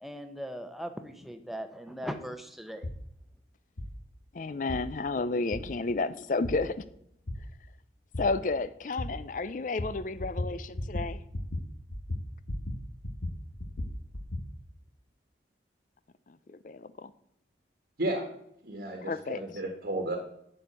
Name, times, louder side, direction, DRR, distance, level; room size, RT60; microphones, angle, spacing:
voice 1, 0.0-2.9, equal, ahead, 7 dB, 0.9 m, -39 dB
sound 1, 2.8-3.0 3.8-3.9 4.7-4.8 5.5-5.6 6.4-6.6 7.3-7.4 8.1-8.3 9.0-9.1 9.8-9.9 10.2-10.5 10.8-11.1 11.3-11.6 11.9-12.8 13.0-14.4, left 1 dB, 80° left, 1.4 m, -34 dB
voice 2, 4.3-6.8 8.2-11.2 16.5-17.1 19.0-19.4, left 3 dB, 45° left, 14 dB, 0.4 m, -31 dB
voice 3, 18.6-20.2, right 1 dB, 60° right, 3 dB, 1.6 m, -33 dB
12.5 x 4.4 x 8.2 m, 0.74 s
head